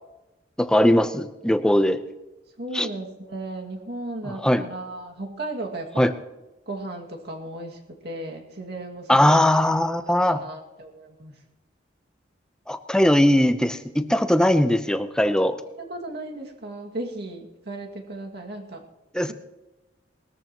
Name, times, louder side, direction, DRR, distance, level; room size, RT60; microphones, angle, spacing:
voice 1, 0.6-2.0 2.7-2.9 4.3-4.6 6.0-6.1 9.1-10.4 12.7-15.6 19.1-19.3, left 1 dB, 5° left, 10 dB, 0.7 m, -20 dB
voice 2, 2.6-6.1 6.7-9.4 9.8-11.3 15.8-18.8, right 1 dB, 60° right, 1 dB, 2.2 m, -35 dB
20.5 x 14.0 x 3.0 m, 1.0 s
head